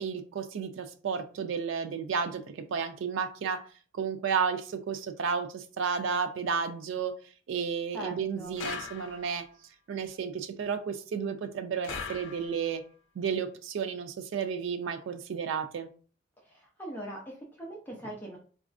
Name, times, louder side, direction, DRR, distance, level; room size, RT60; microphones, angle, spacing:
voice 1, 0.0-3.6 3.9-7.1 7.5-9.4 9.9-12.8 13.2-15.9, right 6 dB, 75° right, 7 dB, 0.3 m, -32 dB
voice 2, 7.9-8.6 16.4-18.4, right 1 dB, 10° left, -3 dB, 0.5 m, -41 dB
sound 1, 8.6-9.5 11.8-12.8, left 5 dB, 70° left, 0.5 m, -40 dB
4.0 x 2.4 x 2.4 m, 0.41 s
head